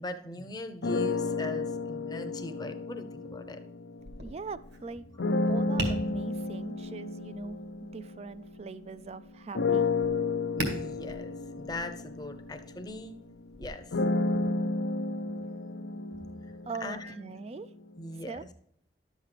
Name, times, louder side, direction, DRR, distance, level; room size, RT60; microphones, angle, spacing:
voice 1, 0.0-3.6 10.5-13.2 13.6-14.0 16.8-17.1 18.0-18.5, left 2 dB, 20° left, 7 dB, 0.7 m, -40 dB
sound 1, 0.8-4.4 5.2-9.0 9.5-17.5, left 3 dB, 90° left, 0.6 m, -32 dB
Tap, 4.0-13.7, right 1 dB, 70° right, 1.9 m, -42 dB
voice 2, 4.2-5.0 5.4-7.6 7.9-9.9 16.7-17.7 18.3-18.4, right 4 dB, 35° right, 14 dB, 0.3 m, -41 dB
11.0 x 7.3 x 3.4 m, 0.70 s
head